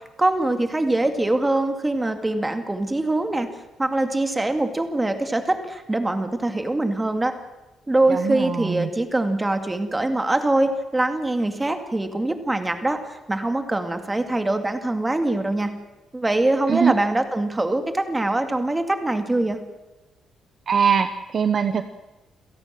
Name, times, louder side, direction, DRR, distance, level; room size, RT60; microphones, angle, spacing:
voice 1, 0.2-3.5 3.8-7.3 7.9-15.7 16.1-19.6, right 2 dB, 10° right, 6 dB, 2.2 m, -23 dB
voice 2, 8.1-8.9 16.7-16.9 20.7-21.8, right 6 dB, 40° right, 9 dB, 1.0 m, -22 dB
29.0 x 17.0 x 7.7 m, 1.1 s
cardioid pair, 150°, 0 cm